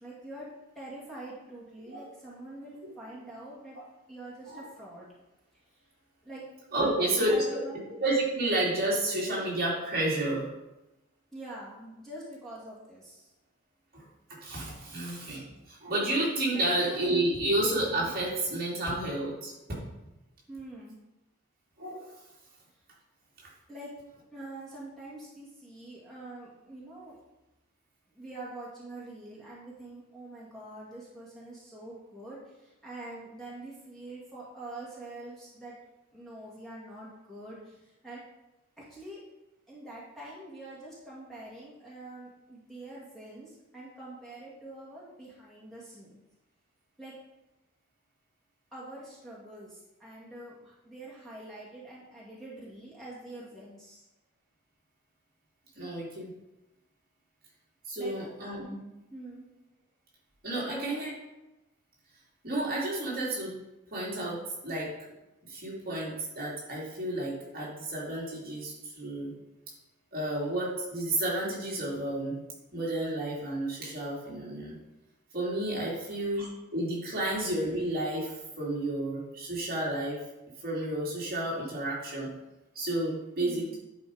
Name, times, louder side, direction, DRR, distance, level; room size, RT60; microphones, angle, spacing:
voice 1, 0.0-3.8 4.1-5.1 5.7-5.8 6.2-6.5 6.7-7.8 11.3-13.3 14.8-15.0 16.5-16.7 20.5-21.0 23.7-23.9 24.3-27.2 28.1-35.7 36.1-38.2 38.8-39.2 39.7-46.2 47.0-47.2 48.7-54.0 58.0-58.2 59.1-59.5 60.5-61.0 76.0-76.1 83.4-83.7, right 1 dB, ahead, -7 dB, 2.0 m, -45 dB
voice 2, 6.7-7.6 8.0-10.5 13.9-14.0 14.4-19.8 21.8-22.1 55.8-56.3 57.9-58.8 60.4-61.1 62.4-63.6 63.9-64.9 65.5-69.3 70.1-72.4 72.7-74.8 75.3-80.2 80.6-82.3 82.7-83.8, right 1 dB, 40° right, -5 dB, 2.4 m, -31 dB
10.5 x 4.4 x 4.9 m, 0.96 s
head